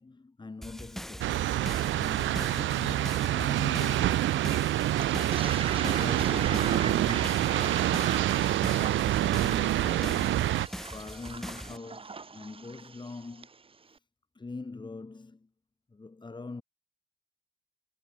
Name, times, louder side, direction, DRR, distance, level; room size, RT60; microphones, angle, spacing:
voice 1, 0.0-1.4 2.0-4.6 5.7-8.1 8.7-10.4 10.9-13.5 14.4-15.5 15.9-16.6, left 3 dB, 20° left, 3.9 m, -43 dB
sound 1, 0.6-11.8, equal, ahead, 4.9 m, -42 dB
sound 2, 1.2-10.7, right 14 dB, 75° right, 0.7 m, -27 dB
Toilet flush, 5.0-13.5, right 4 dB, 25° right, 1.4 m, -39 dB
cardioid pair, 90°, 20 cm